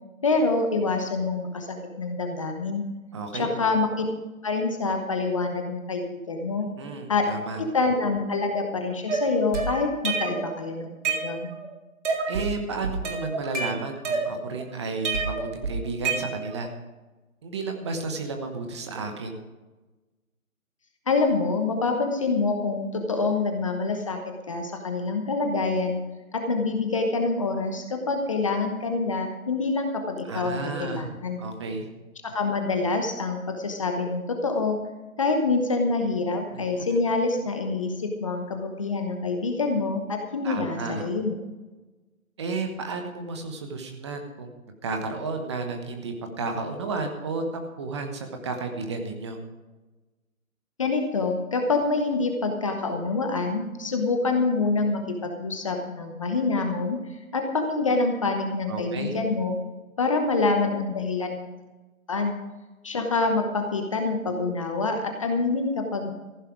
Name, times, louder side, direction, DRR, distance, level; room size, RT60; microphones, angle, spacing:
voice 1, 0.2-2.8 3.3-4.0 4.4-6.7 7.1-7.2 7.6-10.9 11.2-11.5 21.1-24.2 24.5-26.0 26.3-31.4 32.2-34.8 35.2-41.3 50.8-59.5 60.0-61.5 62.1-62.3 62.8-66.1, left 3 dB, 25° left, 4 dB, 0.9 m, -26 dB
voice 2, 3.1-3.7 6.8-7.6 12.3-16.7 17.4-19.4 30.3-31.1 31.4-31.9 36.5-37.0 40.4-41.1 42.4-44.5 44.8-49.4 58.7-59.2, right 3 dB, 20° right, 5 dB, 1.2 m, -32 dB
sound 1, 9.1-10.5 10.8-11.7 12.0-12.5 12.8-14.6 15.0-16.7, right 4 dB, 55° right, 3.6 m, -28 dB
15.0 x 11.0 x 4.9 m, 1.2 s
figure-of-eight pair, 155°, 42 cm